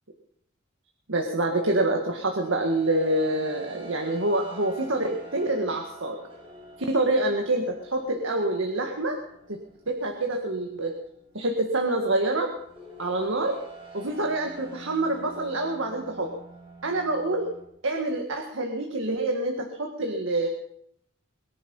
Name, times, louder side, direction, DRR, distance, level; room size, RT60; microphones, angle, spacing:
voice 1, 1.1-6.2 6.8-9.2 9.5-9.6 9.9-11.0 11.3-12.5 13.0-13.6 13.9-16.3 16.8-17.5 17.8-20.5, right 2 dB, 70° right, 2 dB, 1.9 m, -26 dB
sound 1, 1.7-17.6, right 3 dB, 25° right, 5.2 m, -48 dB
22.5 x 10.5 x 5.5 m, 0.72 s
head